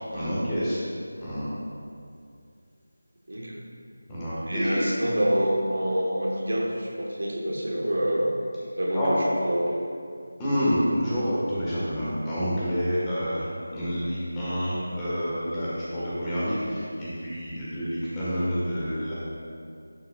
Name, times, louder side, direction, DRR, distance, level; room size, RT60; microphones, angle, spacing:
voice 1, 0.1-0.8 1.2-1.5 4.1-4.8 8.9-9.1 10.4-19.1, equal, 15° left, -10 dB, 1.4 m, -28 dB
voice 2, 3.3-3.6 4.4-8.4 8.8-9.8, equal, 65° right, -2 dB, 1.3 m, -27 dB
11.0 x 5.6 x 2.4 m, 2.3 s
figure-of-eight pair, 165°, 0 cm